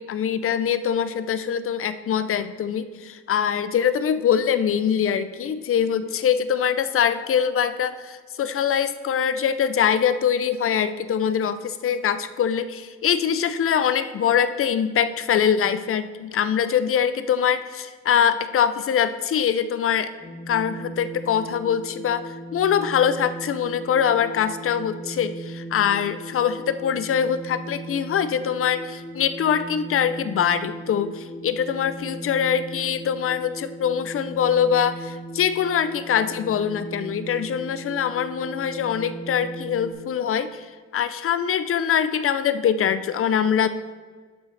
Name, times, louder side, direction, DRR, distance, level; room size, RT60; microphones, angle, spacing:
voice 1, 0.0-20.1 20.5-40.7 40.9-43.7, left 8 dB, 45° left, 12 dB, 0.5 m, -23 dB
sound 1, 20.2-39.9, right 1 dB, 10° left, 1.5 m, -38 dB
12.0 x 5.5 x 3.3 m, 1.5 s
cardioid pair, 90°, 30 cm